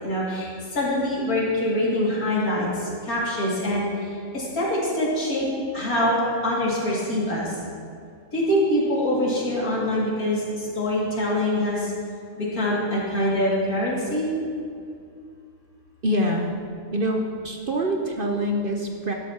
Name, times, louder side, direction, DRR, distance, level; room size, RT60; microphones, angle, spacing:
voice 1, 0.0-5.5 5.7-7.5 8.3-11.9 12.4-14.3, left 1 dB, 85° left, -6 dB, 2.9 m, -24 dB
voice 2, 16.0-16.5 16.9-19.1, equal, 45° right, 2 dB, 0.8 m, -25 dB
12.5 x 12.0 x 2.9 m, 2.3 s
omnidirectional pair, 1.5 m